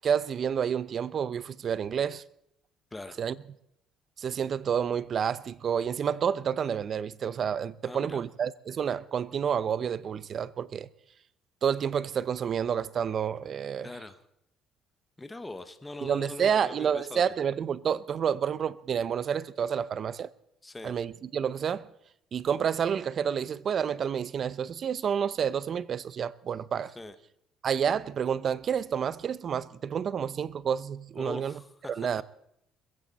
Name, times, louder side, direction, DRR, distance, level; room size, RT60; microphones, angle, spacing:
voice 1, 0.0-2.2 3.2-3.3 4.2-10.9 11.6-13.9 16.0-20.3 20.8-21.9 22.3-26.9 27.6-31.5 32.0-32.2, right 7 dB, 40° right, 0.7 m, -29 dB
voice 2, 2.9-3.2 7.8-8.2 13.8-14.2 15.2-17.2 20.6-20.9 26.8-27.1 31.2-32.2, left 2 dB, 10° left, 1.1 m, -42 dB
22.0 x 15.5 x 4.2 m
cardioid pair, 140°, 0 cm